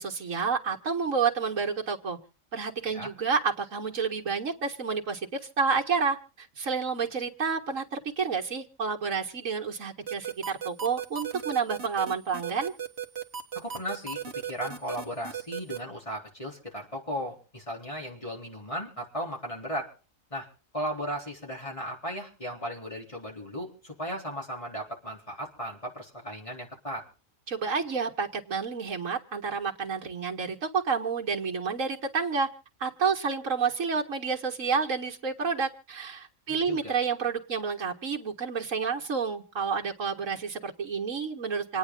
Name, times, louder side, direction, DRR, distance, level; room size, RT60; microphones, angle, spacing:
voice 1, 0.0-2.2 2.5-12.7 27.5-32.5 32.8-41.8, right 5 dB, 70° right, 1 dB, 2.1 m, -29 dB
sound 1, 10.1-15.8, right 9 dB, 50° right, 1.5 m, -35 dB
voice 2, 13.5-19.9 20.3-20.5 20.7-27.0 36.5-36.9, equal, 25° left, -1 dB, 4.0 m, -36 dB
27.5 x 9.5 x 3.8 m, 0.37 s
omnidirectional pair, 1.4 m